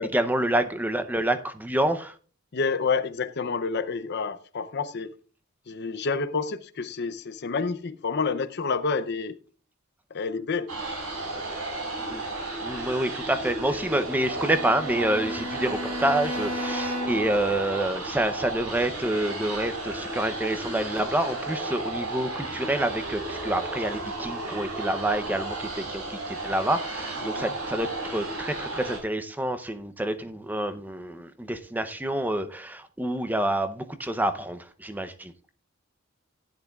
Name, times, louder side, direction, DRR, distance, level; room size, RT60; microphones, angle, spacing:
voice 1, 0.0-2.2 12.1-12.2 12.6-35.3, right 1 dB, 10° right, 0.6 m, -28 dB
voice 2, 2.5-5.1 5.7-9.4 10.1-10.7 27.3-27.5, left 4 dB, 50° left, 0.6 m, -29 dB
sound 1, 10.7-29.0, right 2 dB, 90° right, 4.6 m, -33 dB
Bowed string instrument, 14.3-17.4, left 2 dB, 70° right, 1.9 m, -34 dB
16.0 x 10.5 x 2.4 m
head